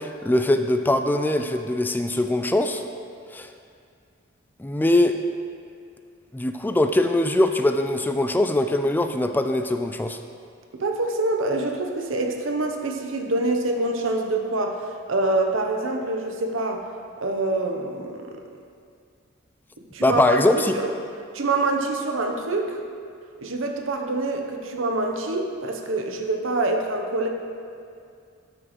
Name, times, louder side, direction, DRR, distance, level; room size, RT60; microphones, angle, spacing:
voice 1, 0.0-2.8 3.3-3.5 4.6-5.2 6.3-10.2 20.0-20.8, left 1 dB, 10° left, 7 dB, 0.3 m, -22 dB
voice 2, 10.7-14.8 15.1-16.8 17.2-18.4 19.9-20.9 21.3-22.8 23.4-27.3, right 2 dB, 75° right, 3 dB, 0.8 m, -25 dB
12.5 x 6.1 x 3.1 m, 2.3 s
head